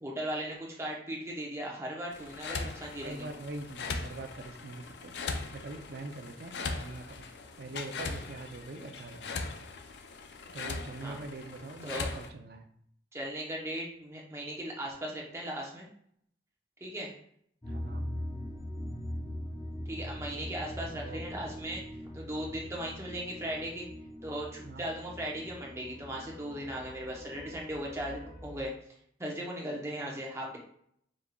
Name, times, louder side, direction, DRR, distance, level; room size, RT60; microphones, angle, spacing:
voice 1, 0.0-3.3 11.0-11.2 11.8-12.1 13.1-15.9 16.8-17.1 19.9-21.8 22.1-23.9 24.2-28.7 29.2-30.6, right 1 dB, 15° right, -2 dB, 0.8 m, -37 dB
sound 1, 2.1-12.3, left 4 dB, 65° left, 0.4 m, -40 dB
voice 2, 3.0-9.4 10.5-12.6 17.7-18.1 20.9-21.2 24.6-24.8, right 2 dB, 55° right, 6 dB, 0.5 m, -44 dB
sound 2, 17.6-28.6, equal, 20° left, 1.1 m, -42 dB
5.1 x 3.6 x 2.2 m, 0.67 s
head